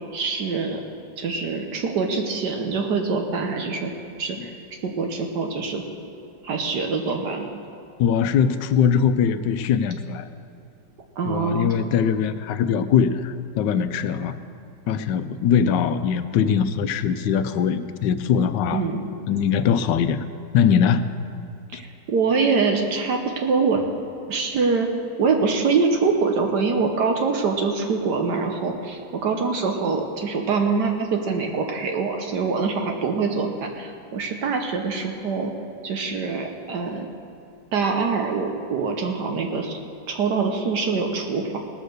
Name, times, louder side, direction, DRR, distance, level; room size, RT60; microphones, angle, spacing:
voice 1, 0.1-0.8 1.2-3.9 4.2-4.5 4.8-5.8 6.4-7.6 11.2-11.7 18.7-19.1 21.7-23.8 24.3-24.9 25.2-35.5 35.8-37.1 37.7-39.8 40.1-41.6, right 4 dB, 70° right, 3 dB, 1.5 m, -24 dB
voice 2, 8.0-10.3 11.2-14.4 14.9-18.8 19.3-20.2 20.5-21.0 21.7-21.8, left 7 dB, 80° left, 11 dB, 1.2 m, -21 dB
18.0 x 6.5 x 6.6 m, 2.6 s
omnidirectional pair, 1.9 m